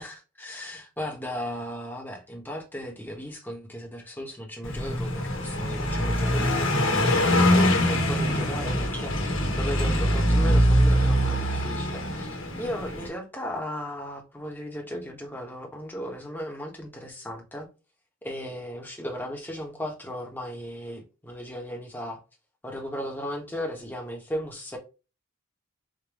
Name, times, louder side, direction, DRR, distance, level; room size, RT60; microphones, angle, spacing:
voice 1, 0.0-17.7 18.2-22.2 22.6-24.8, equal, 10° left, 1.2 m, -36 dB
Car passing by, 4.6-13.1, equal, 75° left, 1.4 m, -23 dB
5.2 x 2.9 x 3.0 m
head